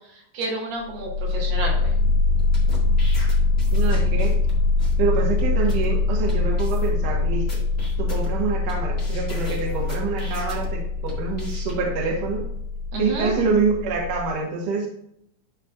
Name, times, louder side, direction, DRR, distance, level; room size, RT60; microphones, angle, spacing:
voice 1, 0.3-1.9 12.9-13.4, right 2 dB, 80° right, -2 dB, 3.6 m, -29 dB
sound 1, 0.8-14.3, left 4 dB, 35° right, 2.1 m, -23 dB
sound 2, 2.4-4.5 4.8-4.9 5.4-5.5 5.7-5.9 6.3-6.4 6.6-7.1 7.5-8.7 9.0-10.7 11.1-11.7, left 2 dB, 25° left, 1.3 m, -41 dB
voice 2, 3.7-4.3 5.0-7.6 8.0-12.4 13.0-14.9, right 4 dB, 65° right, -1 dB, 2.6 m, -26 dB
12.5 x 4.3 x 2.4 m, 0.75 s
omnidirectional pair, 4.5 m